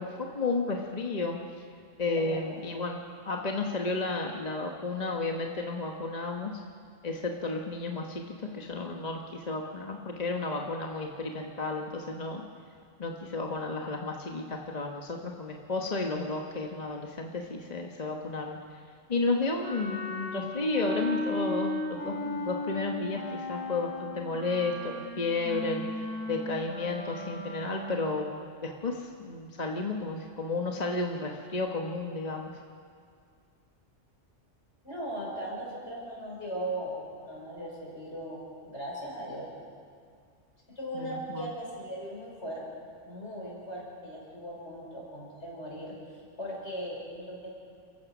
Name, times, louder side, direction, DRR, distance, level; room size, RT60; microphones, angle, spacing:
voice 1, 0.0-1.6 2.0-3.0 3.2-6.5 7.0-12.4 13.0-18.8 19.1-25.8 26.3-32.5 40.9-41.5, left 3 dB, 35° left, 1 dB, 1.2 m, -32 dB
voice 2, 2.2-2.6 34.8-39.5 40.7-42.6 43.1-46.0 46.4-47.5, equal, 60° left, -3 dB, 5.8 m, -38 dB
Wind instrument woodwind instrument, 19.6-28.2, left 2 dB, 5° right, 6.0 m, -36 dB
28.0 x 15.0 x 6.1 m, 2.2 s
omnidirectional pair, 1.3 m